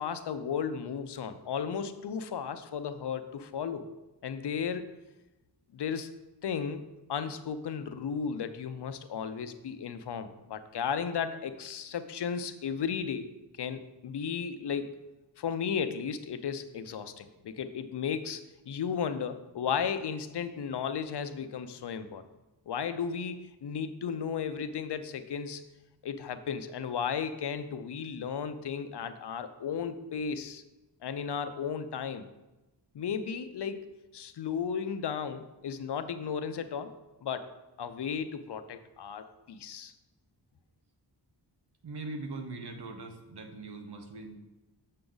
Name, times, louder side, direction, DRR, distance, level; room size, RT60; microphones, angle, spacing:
voice 1, 0.0-3.9 4.2-4.9 5.7-6.1 6.4-6.8 7.1-13.3 13.6-14.9 15.4-22.2 22.7-25.6 26.0-30.6 31.0-32.3 32.9-33.9 34.1-36.9 37.2-37.5 37.8-39.9, left 7 dB, 70° left, 10 dB, 0.6 m, -34 dB
voice 2, 41.8-44.4, right 3 dB, 65° right, 5 dB, 1.0 m, -41 dB
7.0 x 6.6 x 3.9 m, 1.0 s
wide cardioid pair, 140°, 42 cm